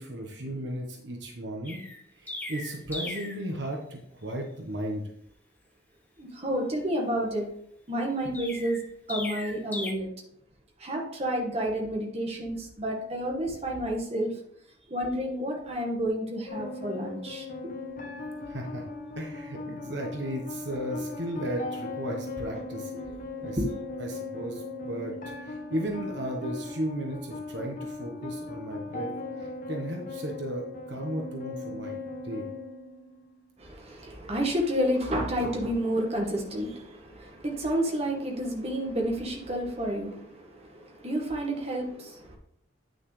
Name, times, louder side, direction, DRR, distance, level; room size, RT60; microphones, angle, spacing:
voice 1, 0.0-1.8 2.2-5.0 18.5-18.8 19.2-22.9 23.4-23.6 24.0-25.1 25.4-29.1 29.4-32.5, right 1 dB, 65° right, 1 dB, 1.2 m, -35 dB
Chirp tweet, 1.6-3.4 8.3-9.9, left 2 dB, 10° left, 1.0 m, -37 dB
voice 2, 6.2-7.4 7.9-8.8 9.1-10.1 10.8-14.3 14.9-17.7 23.4-23.7 33.6-42.4, equal, 35° right, 0 dB, 1.7 m, -30 dB
sound 1, 16.5-33.5, left 2 dB, 45° left, 0.9 m, -38 dB
9.2 x 6.3 x 3.3 m, 0.70 s
head